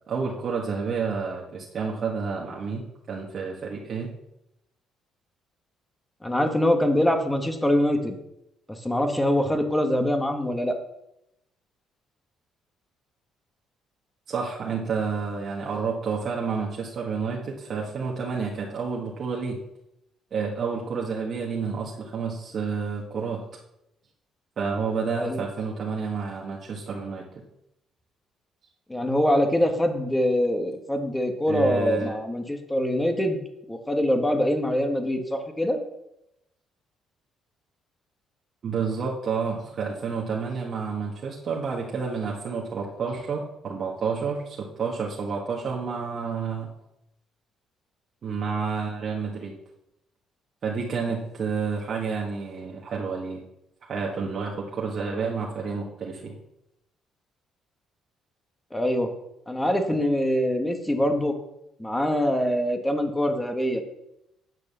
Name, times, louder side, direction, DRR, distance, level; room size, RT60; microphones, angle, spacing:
voice 1, 0.1-4.1 14.3-19.6 20.3-23.4 24.6-27.2 31.5-32.1 38.6-46.7 48.2-49.5 50.6-53.4 53.8-56.3, right 5 dB, 50° right, -2 dB, 1.8 m, -30 dB
voice 2, 6.2-8.2 8.8-10.7 25.2-25.4 28.9-33.4 33.7-35.8 58.7-59.1 59.5-61.3 61.8-63.8, equal, 10° left, 5 dB, 1.6 m, -24 dB
9.7 x 6.7 x 6.9 m, 0.84 s
cardioid pair, 100°, 0 cm